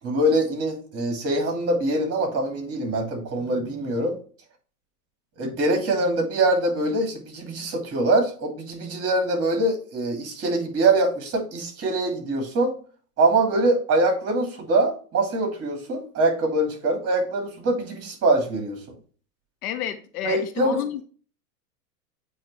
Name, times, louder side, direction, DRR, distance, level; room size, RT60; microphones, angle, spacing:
voice 1, 0.0-4.2 5.4-12.7 13.2-19.0 20.2-20.8, right 2 dB, 30° right, 2.7 m, -23 dB
voice 2, 19.6-21.0, left 11 dB, 65° left, 1.0 m, -30 dB
8.5 x 3.2 x 4.2 m
hypercardioid pair, 105°, 48 cm